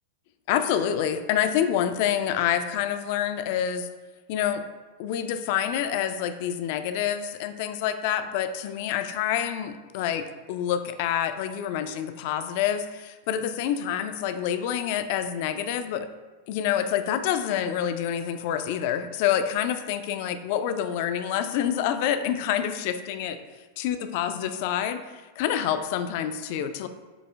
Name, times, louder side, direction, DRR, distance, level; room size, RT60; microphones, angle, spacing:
voice 1, 0.5-3.9 4.3-4.6 5.0-16.1 16.5-23.4 23.8-25.0 25.4-26.9, left 9 dB, 50° left, 9 dB, 0.3 m, -27 dB
7.8 x 2.7 x 2.3 m, 1.2 s
figure-of-eight pair, 90°, 0 cm